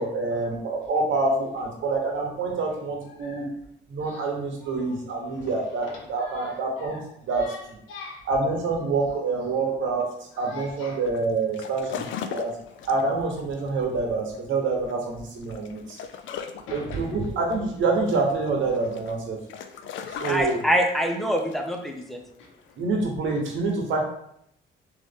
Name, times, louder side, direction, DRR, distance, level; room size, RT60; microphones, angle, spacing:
voice 1, 0.0-3.5 3.9-7.0 7.3-7.4 8.3-10.1 10.4-12.0 12.3-12.5 12.8-16.0 16.7-17.1 17.4-19.4 20.1-20.6 22.8-24.0, right 3 dB, 75° right, 1 dB, 1.2 m, -26 dB
voice 2, 3.1-3.5 4.0-8.3 9.0-9.8 10.3-11.0 15.8-17.5 20.1-20.3 21.3-21.5 22.4-22.6, left 3 dB, 90° left, 0 dB, 1.0 m, -44 dB
sound 1, 10.0-23.1, left 7 dB, 70° left, 0.5 m, -39 dB
voice 3, 20.3-22.2, equal, ahead, 2 dB, 0.8 m, -25 dB
4.0 x 3.1 x 3.7 m, 0.73 s
cardioid pair, 90°, 20 cm